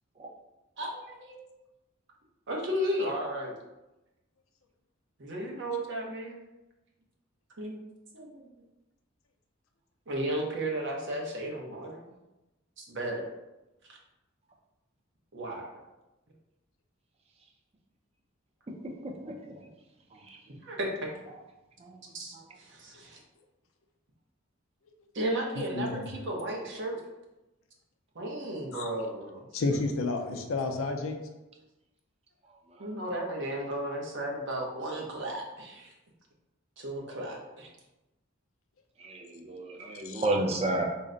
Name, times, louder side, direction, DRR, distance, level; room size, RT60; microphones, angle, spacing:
voice 1, 0.8-1.4 2.5-3.5 5.2-6.4 7.6-7.8 8.1-8.3 10.1-12.0 12.8-13.3 13.9-14.0 15.3-15.7 20.6-21.1 22.1-22.4 22.7-23.2 25.1-27.0 28.1-29.4 32.8-35.9 36.8-37.7, right 1 dB, 60° right, 0 dB, 0.8 m, -34 dB
voice 2, 19.0-19.6 20.1-20.4 21.8-22.0 22.3-22.4 32.8-32.9 39.0-40.9, right 2 dB, 30° right, 2 dB, 0.5 m, -32 dB
voice 3, 25.6-26.1 28.7-28.9 29.5-31.2 40.0-40.3, left 3 dB, 75° left, 5 dB, 0.5 m, -31 dB
3.9 x 2.1 x 3.8 m, 1.0 s
head